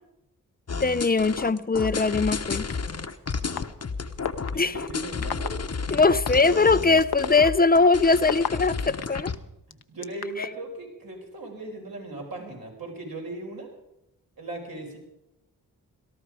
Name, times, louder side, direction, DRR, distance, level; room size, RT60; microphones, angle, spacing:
sound 1, 0.7-9.4, left 5 dB, 40° left, 1.1 m, -32 dB
voice 1, 0.8-2.7 4.6-4.7 5.9-9.3, left 4 dB, 20° left, 15 dB, 0.7 m, -21 dB
sound 2, 2.7-2.8 3.6-3.7 4.2-4.5 5.2-5.5 6.3-6.4 7.0-9.0 9.7-10.5, left 9 dB, 70° left, 0.9 m, -29 dB
voice 2, 4.5-5.6 5.9-6.0 9.7-13.7 14.4-15.0, right 2 dB, 60° right, 0 dB, 5.0 m, -38 dB
18.0 x 13.0 x 4.9 m, 0.87 s
supercardioid pair, 40°, 40 cm